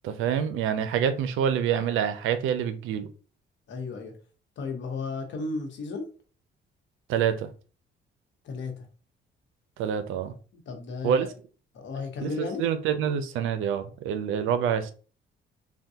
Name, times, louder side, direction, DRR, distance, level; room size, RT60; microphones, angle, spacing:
voice 1, 0.0-3.1 7.1-7.5 9.8-10.3 11.0-11.3 12.2-12.3 12.6-14.9, right 8 dB, 85° right, 0.4 m, -26 dB
voice 2, 3.7-4.1 4.6-6.1 8.4-8.9 10.5-11.3 11.7-12.6, left 4 dB, 70° left, 0.9 m, -34 dB
3.4 x 2.2 x 2.7 m
cardioid pair, 90°, 20 cm